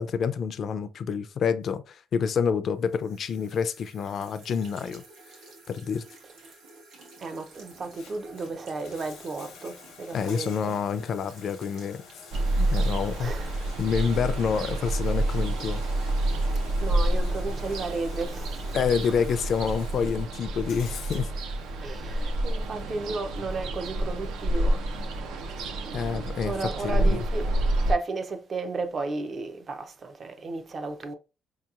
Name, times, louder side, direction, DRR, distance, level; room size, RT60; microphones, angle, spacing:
voice 1, 0.0-5.0 5.7-6.0 10.1-12.0 12.6-13.3 13.8-15.8 18.7-21.3 25.9-26.5 26.8-27.2, left 6 dB, 40° left, 0.3 m, -28 dB
sound 1, 2.8-14.2, right 3 dB, 60° right, 1.2 m, -52 dB
voice 2, 7.2-10.6 13.2-13.5 16.8-18.7 19.0-19.1 21.8-24.9 26.4-27.5 27.9-31.1, right 3 dB, 30° right, 0.4 m, -33 dB
Bathtub (filling or washing), 7.7-23.7, left 6 dB, 85° left, 0.8 m, -50 dB
Ocean, 12.3-27.9, right 1 dB, 90° right, 0.6 m, -28 dB
4.5 x 2.8 x 2.4 m
cardioid pair, 180°, 0 cm